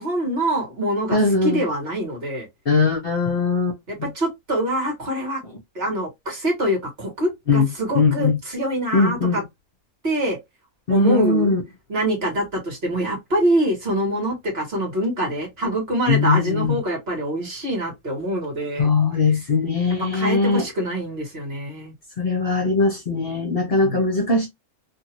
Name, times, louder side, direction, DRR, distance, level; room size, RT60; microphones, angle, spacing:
voice 1, 0.0-2.5 3.9-5.4 5.7-9.4 10.0-10.4 10.9-11.5 11.9-18.9 20.1-21.9 23.8-24.0, right 1 dB, 45° right, 1.6 m, -25 dB
voice 2, 1.1-1.6 2.7-4.1 7.5-7.7 7.9-8.4 8.9-9.4 10.9-11.6 16.1-16.8 18.8-20.7 22.2-24.5, left 4 dB, 45° left, 1.0 m, -20 dB
2.9 x 2.6 x 2.9 m
omnidirectional pair, 1.6 m